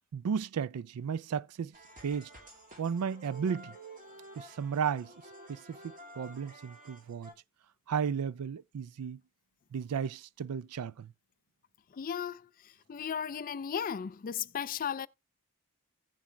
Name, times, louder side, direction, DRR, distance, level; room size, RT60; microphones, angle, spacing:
voice 1, 0.1-1.7 2.0-2.3 2.8-3.7 4.3-5.1 5.5-7.3 7.9-9.2 9.7-11.1, right 7 dB, 85° right, 0.4 m, -34 dB
sound 1, 1.7-7.3, right 1 dB, 35° right, 2.2 m, -51 dB
voice 2, 11.9-15.1, left 8 dB, 40° left, 0.4 m, -36 dB
16.5 x 7.1 x 2.2 m
head